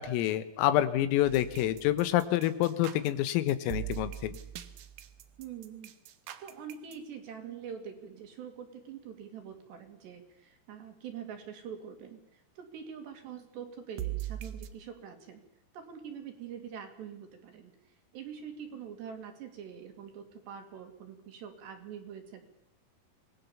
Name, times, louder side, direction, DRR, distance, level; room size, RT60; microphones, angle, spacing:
voice 1, 0.0-4.4, left 13 dB, 85° left, 12 dB, 3.8 m, -27 dB
sound 1, 1.2-7.0 14.0-14.7, right 13 dB, 85° right, 2.0 m, -41 dB
voice 2, 5.4-5.9 6.4-15.4 15.7-17.7 18.1-22.5, right 7 dB, 60° right, 5 dB, 4.4 m, -44 dB
26.5 x 19.5 x 7.1 m, 0.82 s
omnidirectional pair, 6.0 m